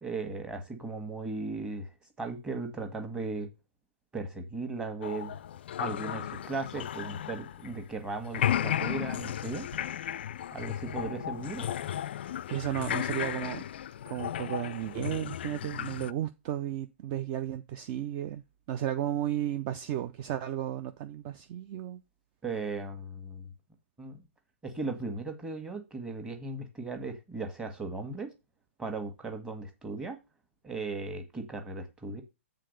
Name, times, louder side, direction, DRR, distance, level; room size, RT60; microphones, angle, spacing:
voice 1, 0.0-3.5 4.1-5.4 5.8-9.6 10.5-11.7 22.4-23.5 24.0-24.2 24.6-28.3 28.8-30.2 30.6-32.2, right 3 dB, 10° right, 1.5 m, -37 dB
sound 1, 5.0-8.0 8.2-16.1, left 10 dB, 55° left, 0.3 m, -34 dB
voice 2, 12.5-13.6 14.1-22.0, right 11 dB, 35° right, 0.5 m, -34 dB
7.5 x 3.8 x 6.6 m
figure-of-eight pair, 115°, 7 cm